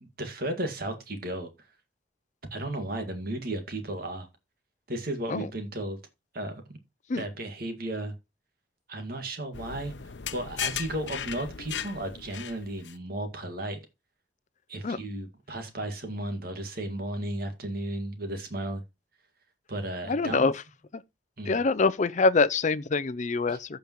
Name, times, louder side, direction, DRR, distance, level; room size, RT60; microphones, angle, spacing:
voice 1, 0.0-1.5 2.5-4.3 4.9-6.0 6.3-6.8 7.1-8.1 8.9-9.9 10.3-13.8 14.7-18.8 19.7-20.5 21.4-21.6 23.5-23.6, right 1 dB, 55° right, 2.0 m, -34 dB
sound 1, 9.5-12.9, left 8 dB, 80° left, 0.8 m, -37 dB
voice 2, 20.1-20.6 20.9-21.0 21.5-23.8, left 4 dB, 40° left, 0.5 m, -25 dB
15.0 x 5.2 x 3.1 m
head